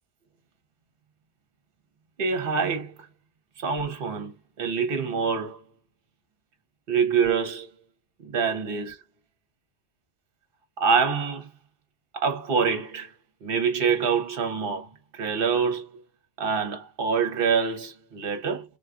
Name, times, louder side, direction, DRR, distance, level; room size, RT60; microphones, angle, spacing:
voice 1, 2.2-2.9 3.6-5.6 6.9-7.7 8.2-9.0 10.8-11.5 12.1-13.1 13.4-14.9 15.1-16.0 16.4-18.6, right 6 dB, 55° right, 1.0 m, -25 dB
3.9 x 2.3 x 2.4 m
omnidirectional pair, 1.2 m